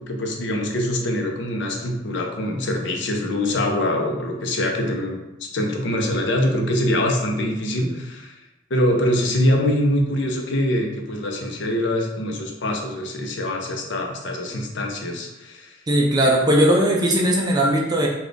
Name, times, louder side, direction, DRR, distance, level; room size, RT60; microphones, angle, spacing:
voice 1, 0.0-5.2 5.5-8.4 8.7-15.7, left 1 dB, 70° left, 2 dB, 0.6 m, -24 dB
voice 2, 15.9-18.1, right 1 dB, 20° right, -2 dB, 0.4 m, -18 dB
3.3 x 2.4 x 3.9 m, 1.0 s
head